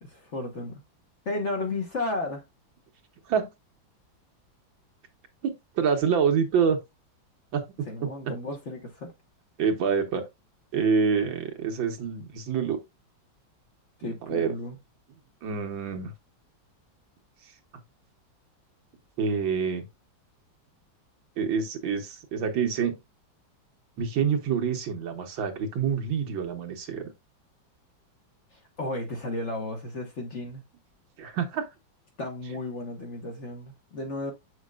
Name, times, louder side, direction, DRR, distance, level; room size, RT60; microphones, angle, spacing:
voice 1, 0.0-0.8 1.2-2.4 7.9-9.1 14.0-14.8 28.5-30.6 32.2-34.3, left 2 dB, 45° left, 1.3 m, -33 dB
voice 2, 5.4-6.8 7.5-8.3 9.6-10.2 10.7-12.8 14.0-14.5 15.4-16.1 19.2-19.8 21.4-22.9 24.0-27.1 31.2-31.7, right 6 dB, 75° right, 1.9 m, -27 dB
7.2 x 6.4 x 2.4 m
omnidirectional pair, 2.1 m